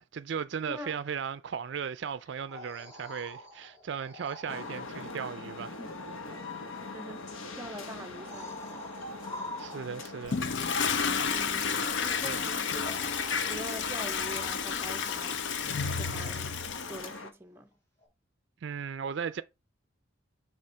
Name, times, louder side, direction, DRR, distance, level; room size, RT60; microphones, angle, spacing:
voice 1, 0.0-5.8 9.6-10.4 12.2-12.4 18.6-19.4, right 7 dB, 60° right, 0.4 m, -36 dB
sound 1, 2.3-4.8 6.7-6.8 8.0-10.2 12.1-12.2 12.8-14.9 18.0-18.1, left 1 dB, 15° left, 2.1 m, -45 dB
sound 2, 4.5-17.3, left 3 dB, 90° left, 1.0 m, -43 dB
voice 2, 6.3-8.9 11.2-13.0 13.4-15.5 15.9-16.6 16.9-17.7, right 1 dB, 10° right, 0.6 m, -44 dB
Toilet flush, 10.3-17.1, left 6 dB, 60° left, 0.6 m, -31 dB
6.3 x 3.4 x 4.4 m
head